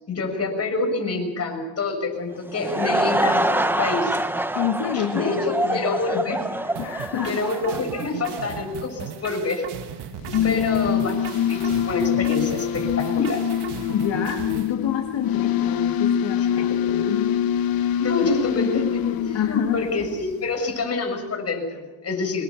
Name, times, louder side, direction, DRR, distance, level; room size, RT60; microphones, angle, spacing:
voice 1, 0.1-4.2 4.9-6.4 7.2-9.7 10.3-11.2 11.5-13.5 16.9-17.1 18.0-22.4, left 3 dB, 35° left, 2 dB, 6.6 m, -27 dB
Laughter / Crowd, 2.3-8.6, right 1 dB, 5° right, 0.7 m, -26 dB
voice 2, 4.6-5.8 6.8-7.4 10.5-10.6 13.9-17.4 19.3-19.9, left 9 dB, 70° left, 3 dB, 1.9 m, -28 dB
sound 1, 6.7-14.7, right 9 dB, 60° right, 1.5 m, -36 dB
sound 2, 10.1-20.6, left 10 dB, 50° left, 1.0 m, -24 dB
25.0 x 21.0 x 7.1 m, 1.2 s
cardioid pair, 140°, 45 cm